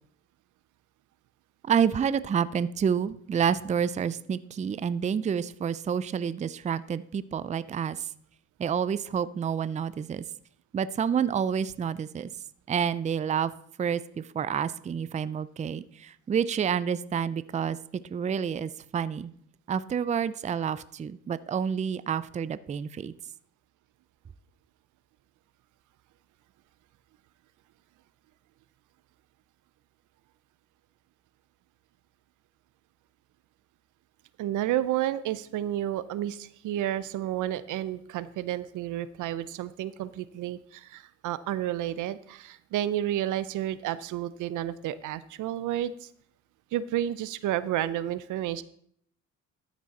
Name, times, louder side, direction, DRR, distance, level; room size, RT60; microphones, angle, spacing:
voice 1, 1.6-8.1 8.6-10.2 10.7-12.3 12.7-13.5 13.8-19.3 19.7-23.1, right 7 dB, 25° right, 16 dB, 0.4 m, -29 dB
voice 2, 34.4-46.1 46.7-48.6, right 12 dB, 80° right, 16 dB, 0.6 m, -31 dB
12.5 x 6.1 x 4.2 m, 0.64 s
cardioid pair, 90°, 30 cm